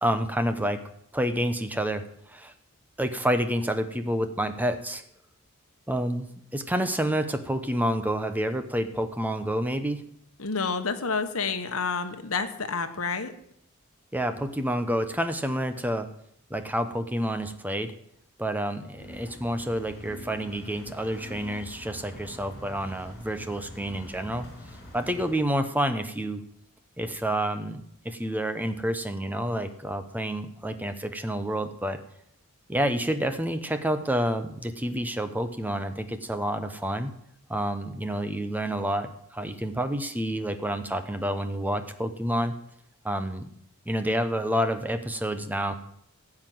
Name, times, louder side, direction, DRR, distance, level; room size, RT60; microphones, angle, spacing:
voice 1, 0.0-0.8 1.1-2.5 3.0-5.0 5.9-10.0 14.1-16.1 16.5-17.9 18.4-24.5 24.9-26.4 27.0-32.0 32.7-37.1 37.5-42.5 43.0-43.5 43.9-45.8, equal, 10° right, 9 dB, 0.9 m, -29 dB
voice 2, 10.4-13.3, left 5 dB, 65° left, 8 dB, 1.3 m, -29 dB
sound 1, 19.0-25.4, left 1 dB, 50° left, 5.6 m, -45 dB
15.0 x 5.9 x 9.3 m, 0.71 s
head